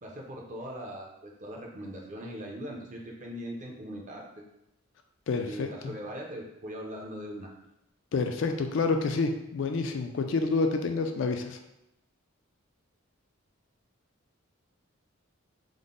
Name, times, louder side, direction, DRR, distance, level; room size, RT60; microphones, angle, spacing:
voice 1, 0.0-4.2 5.4-7.5, equal, 35° right, -1 dB, 0.5 m, -40 dB
voice 2, 5.3-5.9 8.1-11.6, left 3 dB, 60° left, 5 dB, 0.3 m, -28 dB
3.7 x 2.0 x 3.6 m, 0.87 s
head